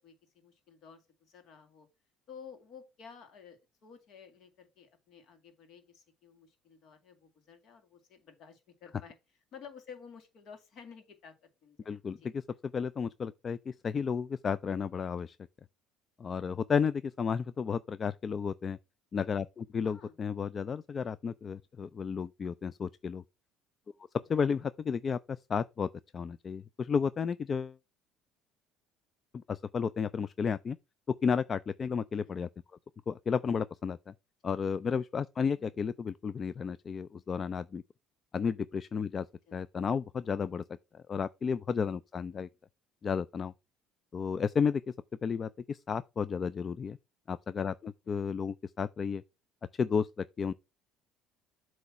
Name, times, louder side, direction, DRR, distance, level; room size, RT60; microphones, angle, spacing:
voice 1, 0.0-1.9 2.3-9.1 9.5-11.9 12.2-12.3 19.8-20.2 24.3-24.5 32.1-32.3 35.6-35.8 39.5-39.6 42.2-42.6 48.0-48.3, left 6 dB, 55° left, 2.1 m, -53 dB
voice 2, 11.9-12.4 12.7-15.4 16.2-18.8 19.1-23.2 24.3-27.8 29.3-30.8 31.2-32.5 33.1-34.1 34.4-37.8 38.3-39.3 39.5-40.6 40.9-42.5 43.0-43.5 44.1-44.9 45.2-47.0 47.3-49.2 49.8-50.5, left 6 dB, 30° left, 0.3 m, -32 dB
7.9 x 3.2 x 5.7 m
cardioid pair, 120°, 0 cm